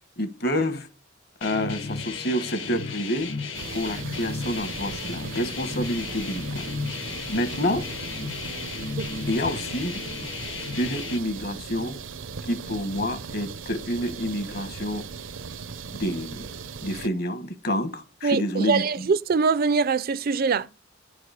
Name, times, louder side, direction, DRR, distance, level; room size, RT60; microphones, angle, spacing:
voice 1, 0.2-0.9 1.4-3.3 3.7-6.6 7.3-7.9 9.3-10.0 10.8-12.0 12.4-15.1 15.9-16.5 16.8-19.1, equal, 55° left, 1.2 m, -28 dB
sound 1, 1.4-11.2, left 4 dB, 75° left, 1.7 m, -34 dB
sound 2, 3.5-17.1, right 5 dB, 80° right, 0.7 m, -38 dB
voice 2, 18.2-20.7, right 5 dB, 50° right, 0.4 m, -23 dB
10.5 x 4.8 x 8.0 m
head